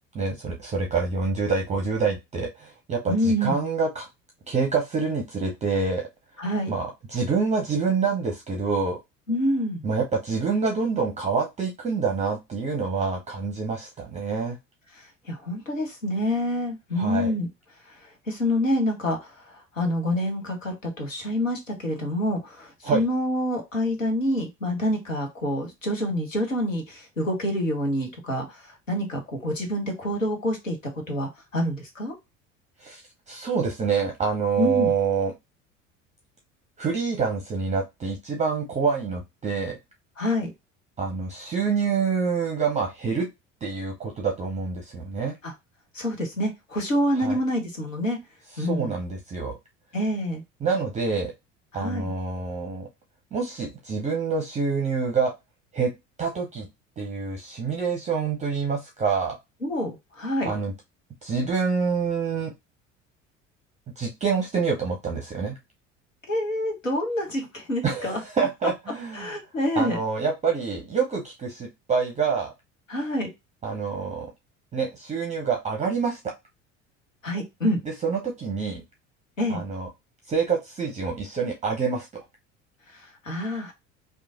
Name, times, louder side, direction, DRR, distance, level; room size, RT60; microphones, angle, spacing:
voice 1, 0.1-4.1 4.5-6.1 6.7-9.0 9.8-14.6 17.0-17.3 22.8-23.0 32.8-33.0 33.3-35.3 36.8-39.8 41.0-43.3 43.6-45.4 47.2-47.4 48.6-49.5 50.6-51.3 51.7-52.9 53.3-55.3 55.7-55.9 56.2-56.7 57.0-59.4 60.4-60.7 61.2-62.5 64.0-65.6 67.8-69.3 69.8-72.5 73.6-74.3 74.7-76.3 77.8-78.8 79.5-79.9 80.3-82.2, right 5 dB, 20° right, 1 dB, 0.6 m, -26 dB
voice 2, 3.1-3.6 6.4-6.8 9.3-9.8 14.9-17.5 17.9-32.1 34.6-34.9 40.2-40.5 45.4-45.5 45.9-48.2 48.6-49.0 49.9-50.4 51.7-52.1 59.6-60.5 66.3-68.2 69.1-70.0 72.9-73.3 77.2-77.8 79.4-79.6 82.9-83.7, equal, 85° left, 3 dB, 0.8 m, -27 dB
3.0 x 2.2 x 2.4 m, 0.21 s
figure-of-eight pair, 65°, 38 cm